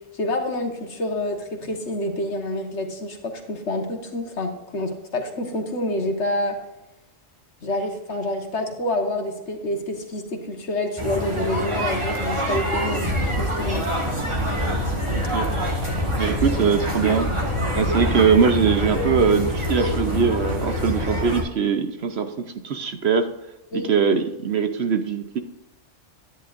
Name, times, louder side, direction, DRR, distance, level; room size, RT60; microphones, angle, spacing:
voice 1, 0.1-6.6 7.6-13.9 23.7-23.9, left 1 dB, 60° left, 4 dB, 1.7 m, -28 dB
sound 1, 11.0-21.4, equal, 25° right, 1.8 m, -25 dB
voice 2, 15.1-15.8 16.2-17.3 17.7-23.3 23.7-25.4, right 6 dB, 60° right, 8 dB, 1.0 m, -22 dB
11.0 x 10.0 x 2.6 m, 0.96 s
omnidirectional pair, 1.3 m